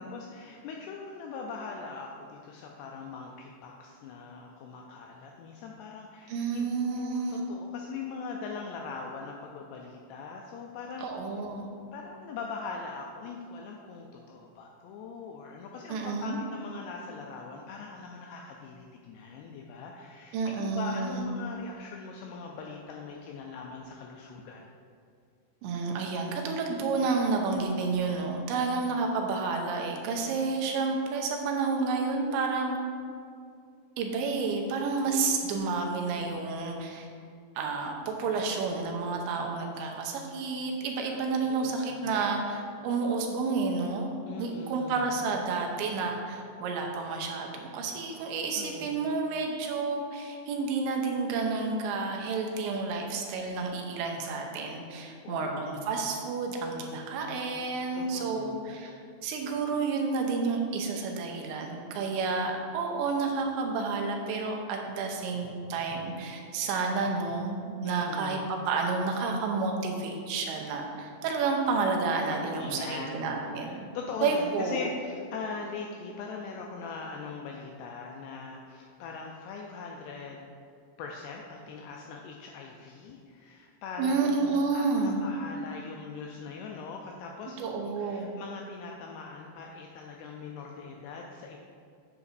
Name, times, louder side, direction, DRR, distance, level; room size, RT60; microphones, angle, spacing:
voice 1, 0.0-11.1 11.9-20.4 20.7-24.7 41.1-42.1 44.3-45.2 48.6-49.1 55.2-55.9 57.9-58.8 67.8-68.5 72.3-80.5 81.0-91.6, left 4 dB, 85° left, 0 dB, 2.3 m, -41 dB
voice 2, 6.3-7.4 11.0-11.7 15.9-16.4 20.3-21.3 25.6-32.8 34.0-37.1 37.6-44.1 44.4-58.9 59.2-68.4 68.7-73.9 74.2-74.9 84.0-85.2 87.6-88.4, right 4 dB, 85° right, 1 dB, 3.0 m, -30 dB
8.6 x 7.9 x 2.6 m, 2.4 s
omnidirectional pair, 5.2 m